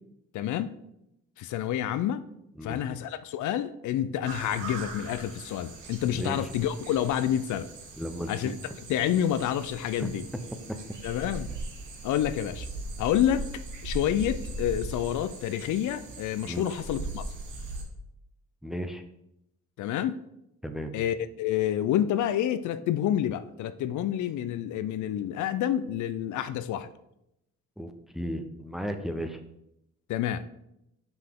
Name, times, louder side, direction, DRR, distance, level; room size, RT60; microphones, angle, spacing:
voice 1, 0.3-0.7 1.4-2.2 2.6-7.7 8.3-8.5 8.9-10.2 11.0-11.5 12.0-12.7 13.0-17.2 19.8-20.2 20.9-26.9 30.1-30.4, left 11 dB, 75° left, 0.5 m, -28 dB
sound 1, 4.2-17.8, right 2 dB, 80° right, 1.3 m, -40 dB
voice 2, 8.0-8.6 10.0-10.1 16.4-16.6 18.6-19.0 20.6-20.9 27.8-29.4, equal, ahead, 0.7 m, -34 dB
6.0 x 5.4 x 3.6 m
cardioid pair, 90°, 30 cm